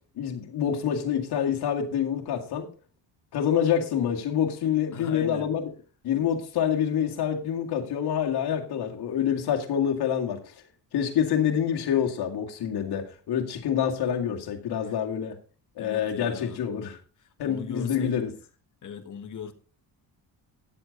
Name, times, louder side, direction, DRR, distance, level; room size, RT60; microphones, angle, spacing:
voice 1, 0.2-2.7 3.3-5.7 6.0-10.5 10.9-15.4 15.8-17.0 17.4-18.3, left 8 dB, 70° left, 2.2 m, -27 dB
voice 2, 4.9-5.5 15.8-16.6 17.4-18.2 18.8-19.5, left 6 dB, 50° left, 1.7 m, -38 dB
10.5 x 7.8 x 4.0 m
cardioid pair, 95°, 40 cm